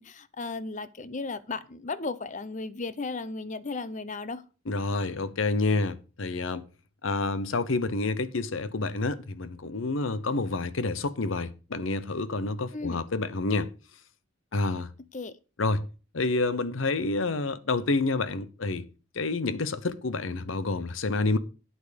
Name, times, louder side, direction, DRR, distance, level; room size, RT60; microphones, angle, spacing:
voice 1, 0.0-4.4 12.7-13.0 15.1-15.3, left 3 dB, 40° left, 0.7 m, -35 dB
voice 2, 4.7-6.6 7.0-13.7 14.5-14.9 15.6-15.9 16.1-18.9 19.1-21.4, left 3 dB, 85° left, 0.8 m, -28 dB
9.1 x 8.4 x 5.1 m
head